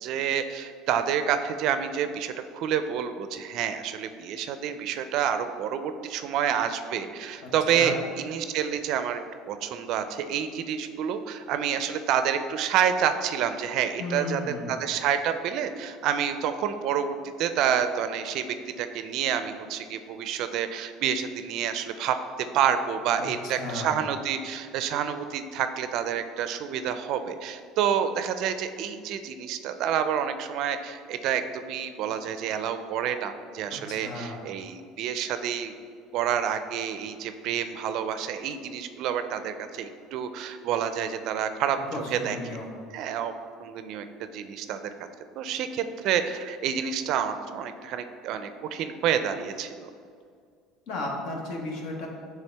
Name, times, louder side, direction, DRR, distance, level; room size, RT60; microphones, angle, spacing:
voice 1, 0.0-9.2 9.5-22.2 22.5-35.7 36.1-42.4 42.9-43.3 43.6-44.8 45.4-49.9, right 8 dB, 55° right, 9 dB, 0.4 m, -28 dB
voice 2, 7.4-7.9 14.0-14.7 23.4-23.9 33.7-34.4 41.9-42.7 50.9-52.1, left 2 dB, 60° left, 0 dB, 1.2 m, -34 dB
9.0 x 3.5 x 3.4 m, 2.2 s
cardioid pair, 145°, 0 cm